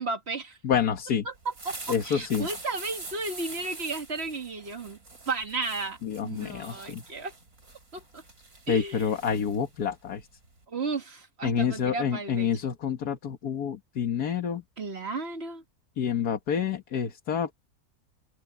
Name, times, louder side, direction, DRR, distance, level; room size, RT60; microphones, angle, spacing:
voice 1, 0.0-0.6 1.3-1.8 2.0-5.0 5.3-7.3 7.9-8.2 8.7-9.1 10.7-12.5 14.8-15.6, right 3 dB, 45° right, 1.8 m, -34 dB
voice 2, 0.6-1.3 1.9-2.5 6.0-7.0 8.7-10.3 11.4-14.6 16.0-17.5, left 7 dB, 80° left, 1.9 m, -28 dB
sound 1, 1.3-10.6, right 3 dB, 70° right, 5.0 m, -45 dB
omnidirectional pair, 1.6 m